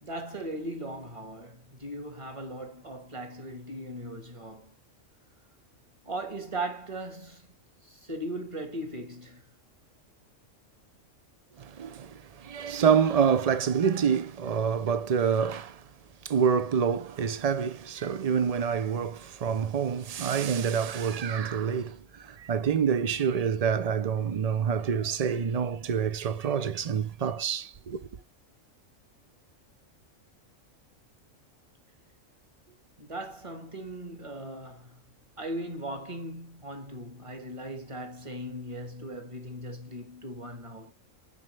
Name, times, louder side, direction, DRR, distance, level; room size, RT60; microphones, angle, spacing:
voice 1, 0.0-4.8 6.0-7.5 7.8-9.4 33.0-35.0 35.4-40.9, right 1 dB, 25° right, 1.5 m, -38 dB
voice 2, 11.6-15.8 16.2-28.0, right 7 dB, 65° right, 0.3 m, -27 dB
7.4 x 5.3 x 3.2 m
omnidirectional pair, 1.4 m